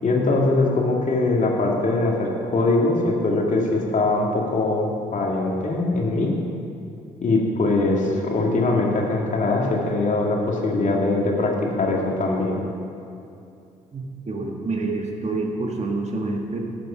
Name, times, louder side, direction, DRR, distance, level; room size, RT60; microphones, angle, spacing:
voice 1, 0.0-6.3 7.2-12.6, left 2 dB, 45° left, -1 dB, 2.3 m, -22 dB
voice 2, 13.9-16.6, right 3 dB, 40° right, 0 dB, 2.0 m, -27 dB
13.0 x 7.6 x 5.7 m, 2.6 s
hypercardioid pair, 50°, 17 cm